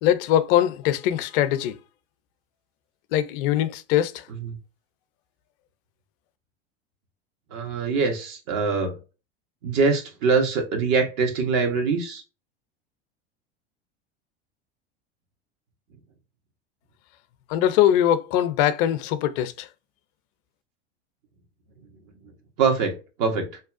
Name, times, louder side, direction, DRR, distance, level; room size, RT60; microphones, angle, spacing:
voice 1, 0.0-1.8 3.1-4.2 17.5-19.7, left 11 dB, 60° left, 0.5 m, -22 dB
voice 2, 7.5-8.9 9.6-12.2 22.6-22.9 23.2-23.5, right 4 dB, 60° right, 1.0 m, -23 dB
2.7 x 2.3 x 2.5 m
hypercardioid pair, 90°, 32 cm